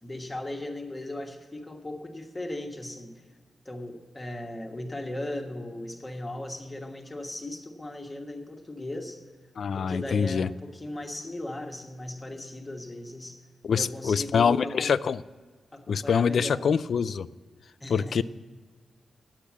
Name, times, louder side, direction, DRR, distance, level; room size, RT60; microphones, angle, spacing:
voice 1, 0.0-3.2 3.6-9.2 9.7-13.4 13.7-14.9 15.7-16.7 17.8-18.2, left 1 dB, 20° left, 3 dB, 1.3 m, -37 dB
voice 2, 9.6-10.5 13.6-15.2 15.9-17.3 17.9-18.2, left 6 dB, 65° left, 16 dB, 0.3 m, -25 dB
10.0 x 8.5 x 7.2 m, 1.5 s
wide cardioid pair, 145°, 0 cm